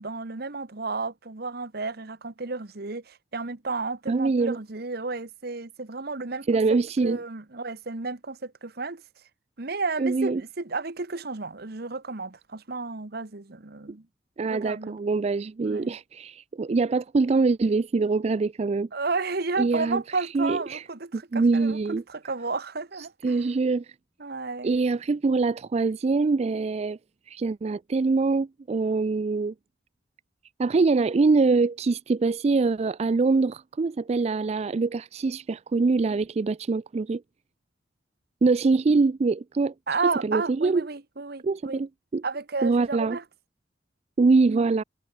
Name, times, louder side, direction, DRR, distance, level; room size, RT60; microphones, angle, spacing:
voice 1, 0.0-9.0 9.6-14.1 14.5-15.0 15.6-16.0 18.9-21.8 22.1-23.4 24.2-24.8 39.9-41.8 42.2-43.2, right 3 dB, 55° right, 1.3 m, -32 dB
voice 2, 4.1-4.6 6.5-7.2 10.0-10.4 14.4-18.9 19.6-20.0 20.3-20.8 21.1-22.0 23.2-23.9 24.6-27.0 27.3-29.5 30.6-37.2 38.4-39.7 40.2-40.8 41.4-42.2 42.6-43.2 44.2-44.8, right 3 dB, 35° right, 0.4 m, -24 dB
head